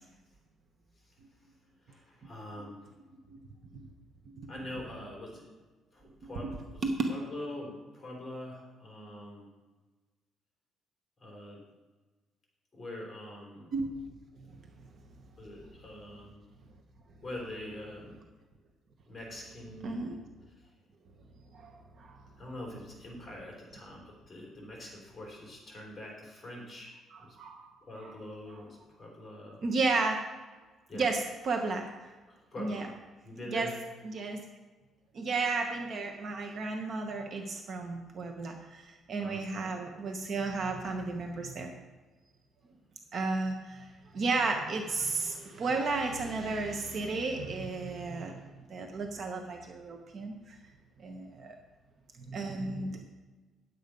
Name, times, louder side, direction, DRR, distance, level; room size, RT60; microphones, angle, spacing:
voice 1, 1.9-2.9 4.5-5.5 5.9-9.5 11.2-11.6 12.7-13.7 15.4-16.4 17.2-18.2 19.1-20.1 22.4-27.4 27.8-29.6 30.9-31.1 32.3-32.9 33.2-33.8 39.2-39.6, left 1 dB, 15° left, -2 dB, 3.7 m, -44 dB
voice 2, 6.2-6.5 6.8-7.0 13.7-14.0 19.8-20.2 21.5-22.2 27.1-27.7 28.0-28.1 28.5-28.6 29.6-30.2 30.9-31.9 32.6-32.9 33.5-33.7 34.0-34.4 35.1-41.7 43.1-48.4 48.7-50.6 51.0-51.6 52.2-53.0, right 3 dB, 40° right, 3 dB, 0.9 m, -33 dB
10.0 x 8.4 x 5.2 m, 1.3 s
cardioid pair, 165°, 0 cm